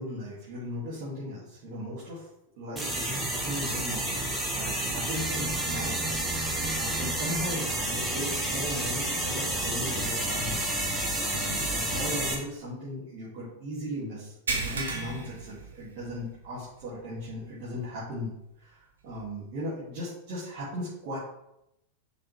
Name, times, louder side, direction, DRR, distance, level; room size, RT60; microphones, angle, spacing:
voice 1, 0.0-2.3 2.6-6.2 6.7-10.6 11.2-18.3 18.6-21.2, equal, 45° right, -10 dB, 2.8 m, -37 dB
sound 1, 2.8-12.4, right 1 dB, 10° right, 1.5 m, -30 dB
sound 2, 14.5-16.4 16.7-16.9 17.4-17.5 19.1-19.2, right 3 dB, 70° right, 1.3 m, -33 dB
6.2 x 6.0 x 3.6 m, 0.83 s
figure-of-eight pair, 90°, 0 cm